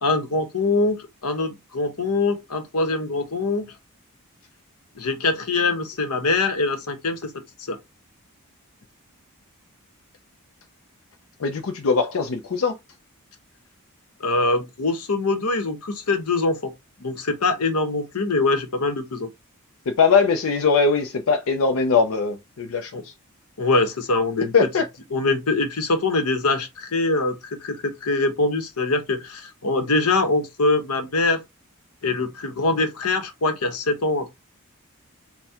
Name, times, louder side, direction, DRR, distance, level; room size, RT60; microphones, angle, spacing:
voice 1, 0.0-3.7 5.0-7.3 7.7-7.8 14.2-16.7 17.0-19.3 22.9-23.0 23.6-24.5 25.1-31.4 32.0-34.3, left 3 dB, 90° left, 1.0 m, -23 dB
voice 2, 11.4-12.8 19.9-23.1 24.5-24.9, left 5 dB, 65° left, 0.5 m, -21 dB
4.3 x 2.2 x 3.5 m
head